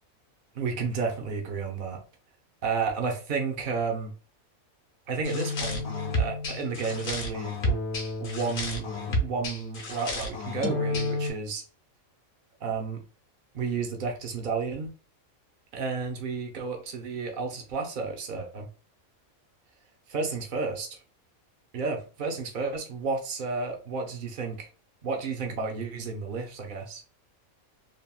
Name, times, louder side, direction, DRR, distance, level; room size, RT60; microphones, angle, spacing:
voice 1, 0.5-2.0 2.6-4.1 5.1-5.8 6.1-7.6 8.2-11.6 12.6-13.0 13.5-14.9 15.7-18.7 20.1-21.0 21.7-24.7 25.0-27.0, right 4 dB, 50° right, 2 dB, 0.7 m, -32 dB
sound 1, 5.2-11.3, left 1 dB, 55° left, 0.9 m, -30 dB
3.4 x 2.2 x 2.3 m, 0.36 s
omnidirectional pair, 1.5 m